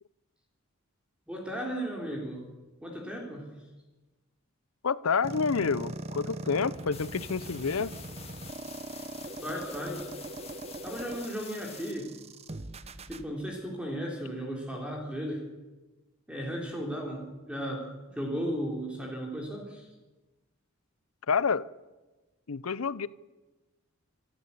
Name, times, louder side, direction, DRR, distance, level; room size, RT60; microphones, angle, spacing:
voice 1, 1.3-2.5 2.8-3.6 9.4-10.1 10.8-12.2 13.1-15.5 16.3-19.9, equal, 5° right, 3.5 m, -35 dB
voice 2, 4.8-8.0 21.3-21.7 22.5-23.1, left 5 dB, 85° left, 0.7 m, -28 dB
sound 1, 5.2-13.2, right 2 dB, 30° right, 0.9 m, -41 dB
sound 2, 6.9-11.9, left 7 dB, 30° left, 1.9 m, -48 dB
26.5 x 12.5 x 8.5 m
head